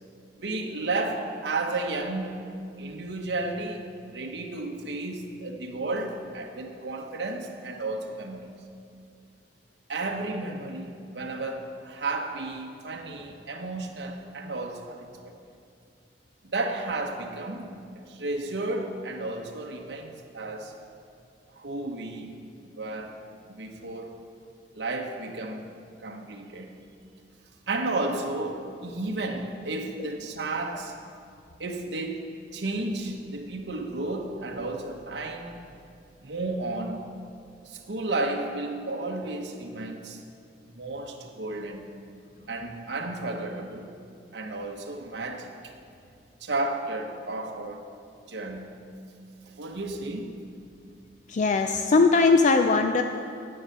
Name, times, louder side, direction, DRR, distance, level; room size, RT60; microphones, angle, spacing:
voice 1, 0.4-2.4 2.8-8.5 9.9-15.3 16.4-20.7 21.5-22.4 22.8-23.2 23.5-24.1 24.7-25.7 26.0-26.7 27.7-30.9 31.6-35.6 36.2-37.1 37.6-40.2 40.6-41.8 42.5-43.9 44.3-45.7 46.4-47.8 48.3-48.8 49.5-50.4, right 2 dB, 80° right, 2 dB, 1.0 m, -33 dB
voice 2, 51.3-53.0, left 4 dB, 45° left, 6 dB, 0.4 m, -20 dB
9.9 x 7.6 x 6.7 m, 2.4 s
head